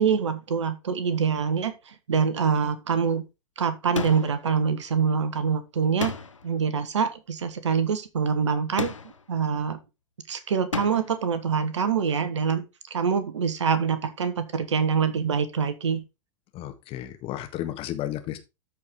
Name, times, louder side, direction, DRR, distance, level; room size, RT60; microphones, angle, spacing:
voice 1, 0.0-3.2 3.6-6.1 6.4-8.9 9.3-9.8 10.3-12.6 12.9-16.0, right 6 dB, 70° right, 1.4 m, -25 dB
sound 1, 3.9-4.5 6.0-6.5 8.8-9.3 10.7-11.2, left 4 dB, 80° left, 1.0 m, -32 dB
voice 2, 16.5-18.4, left 12 dB, 35° left, 1.6 m, -33 dB
13.5 x 4.7 x 3.7 m
figure-of-eight pair, 90°, 16 cm